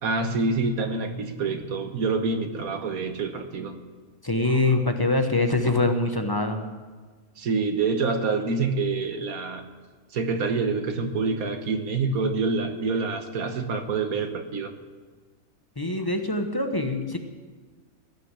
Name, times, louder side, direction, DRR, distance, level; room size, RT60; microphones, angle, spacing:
voice 1, 0.0-3.8 7.4-9.6 10.1-14.7, right 4 dB, 85° right, 6 dB, 1.6 m, -26 dB
voice 2, 4.2-6.6 15.8-17.2, left 2 dB, 20° left, 6 dB, 0.9 m, -24 dB
17.5 x 6.3 x 9.8 m, 1.4 s
omnidirectional pair, 1.5 m